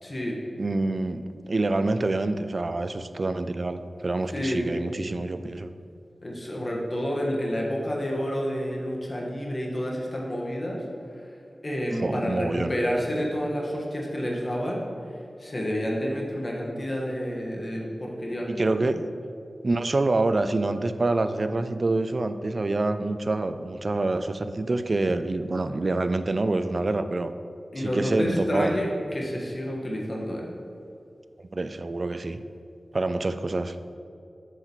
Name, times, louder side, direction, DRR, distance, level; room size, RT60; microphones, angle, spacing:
voice 1, 0.0-0.4 4.3-4.7 6.2-10.8 11.6-14.8 15.4-18.9 27.7-30.4, equal, 45° left, -2 dB, 1.4 m, -29 dB
voice 2, 0.6-5.7 12.0-12.7 18.5-19.0 19.6-27.3 27.8-28.8 31.5-32.4 32.9-33.8, right 2 dB, 55° right, 11 dB, 0.4 m, -26 dB
7.7 x 6.5 x 3.1 m, 2.5 s
cardioid pair, 40°, 0 cm